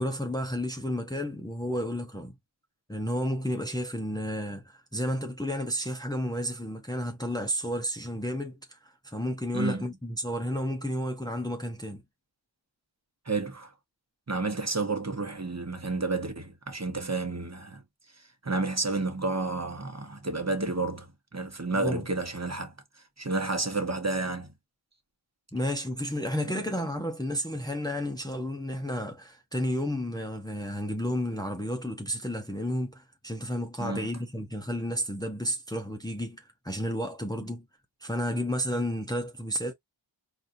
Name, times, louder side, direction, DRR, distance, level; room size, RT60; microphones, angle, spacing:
voice 1, 0.0-2.3 2.9-12.0 21.7-22.0 25.5-37.6 38.0-39.7, equal, 10° left, 0.8 m, -32 dB
voice 2, 9.5-9.9 13.3-13.7 14.3-17.8 18.4-22.7 23.2-24.5 26.5-26.6 33.8-34.1, right 3 dB, 35° right, 1.1 m, -31 dB
4.2 x 2.6 x 2.6 m
wide cardioid pair, 45°, 48 cm